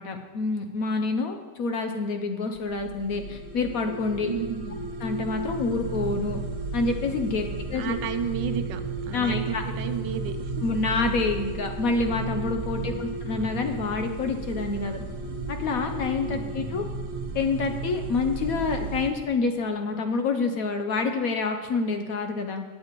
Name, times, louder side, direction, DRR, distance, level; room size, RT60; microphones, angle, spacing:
voice 1, 0.0-4.3 5.0-6.4 6.7-8.0 9.1-9.6 10.6-15.0 15.5-16.8 17.3-22.6, left 4 dB, 65° left, 6 dB, 0.9 m, -27 dB
sound 1, 2.5-19.1, right 3 dB, 60° right, 1.4 m, -34 dB
voice 2, 4.2-4.8 7.5-8.8 9.1-10.5 12.8-13.1 16.3-16.9, right 8 dB, 80° right, 8 dB, 1.4 m, -33 dB
sound 2, 5.6-19.2, right 1 dB, 15° left, 0.6 m, -43 dB
17.0 x 7.6 x 3.0 m, 1.4 s
omnidirectional pair, 1.9 m